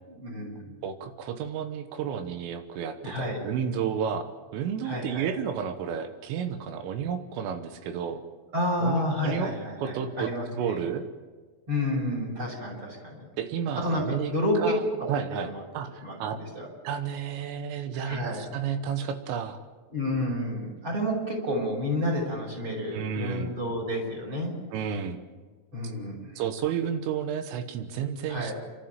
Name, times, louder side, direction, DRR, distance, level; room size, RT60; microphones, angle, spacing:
voice 1, 0.1-0.6 3.0-3.4 4.8-5.3 8.5-10.8 11.7-13.2 13.7-14.7 15.3-15.6 16.0-16.7 17.9-18.4 19.9-24.5 25.7-26.4 28.3-28.5, left 1 dB, 25° right, -1 dB, 6.3 m, -30 dB
voice 2, 0.8-8.2 8.8-9.5 9.8-11.0 13.4-15.5 15.7-16.4 16.9-19.6 22.9-23.6 24.7-25.2 26.4-28.5, right 7 dB, 80° right, 9 dB, 3.7 m, -32 dB
30.0 x 13.0 x 9.0 m, 1.5 s
omnidirectional pair, 5.9 m